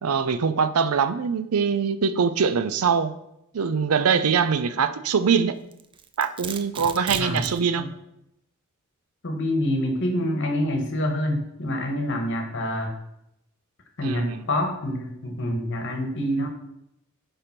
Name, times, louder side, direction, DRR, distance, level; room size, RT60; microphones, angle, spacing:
voice 1, 0.0-3.1 3.5-5.5 6.2-7.8 14.0-14.4, right 6 dB, 80° right, 0.5 m, -23 dB
Domestic sounds home sounds, 5.7-7.6, right 6 dB, 25° right, 0.4 m, -36 dB
voice 2, 9.2-12.9 14.0-16.5, left 1 dB, 55° left, 1.3 m, -26 dB
10.0 x 3.5 x 5.8 m
head